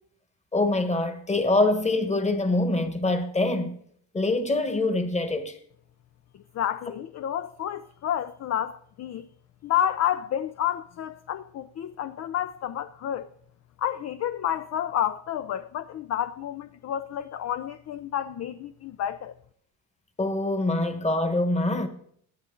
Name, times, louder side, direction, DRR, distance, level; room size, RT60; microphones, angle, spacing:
voice 1, 0.5-3.8 4.1-5.6 20.2-21.9, left 2 dB, 15° left, 1.3 m, -24 dB
voice 2, 6.5-9.3 9.6-13.3 13.8-19.3, left 10 dB, 35° left, 0.5 m, -30 dB
17.0 x 10.5 x 3.8 m
cardioid pair, 135°, 47 cm